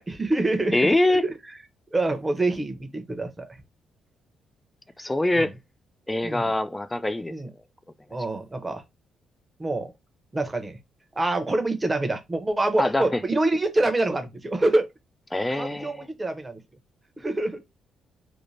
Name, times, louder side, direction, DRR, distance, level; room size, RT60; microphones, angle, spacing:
voice 1, 0.0-0.9 1.2-1.3 1.9-3.6 5.3-5.5 6.2-6.5 7.3-7.5 8.1-8.8 9.6-9.9 10.3-10.8 11.2-14.9 15.5-16.6 17.2-17.6, right 2 dB, 20° right, 0.7 m, -26 dB
voice 2, 0.7-1.2 5.0-5.5 6.1-7.3 12.8-13.2 15.3-16.1, left 1 dB, 15° left, 0.3 m, -24 dB
2.6 x 2.1 x 3.1 m
cardioid pair, 90°, 0 cm